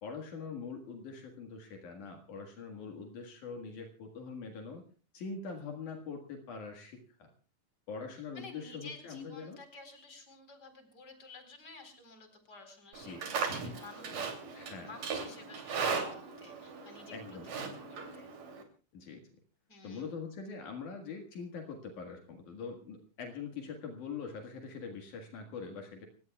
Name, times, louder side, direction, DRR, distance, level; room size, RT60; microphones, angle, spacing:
voice 1, 0.0-4.8 5.1-7.3 7.9-9.6 13.1-13.2 13.6-13.8 14.5-14.9 17.1-17.5 18.9-19.2 19.8-26.1, left 5 dB, 70° left, 3 dB, 3.2 m, -43 dB
voice 2, 8.3-14.3 14.5-17.6 17.9-18.4 19.7-20.1, left 3 dB, 30° left, 6 dB, 4.6 m, -52 dB
Livestock farm animals working animals, 12.9-18.6, right 5 dB, 80° right, 4.5 m, -38 dB
30.0 x 17.0 x 2.4 m, 0.36 s
omnidirectional pair, 3.7 m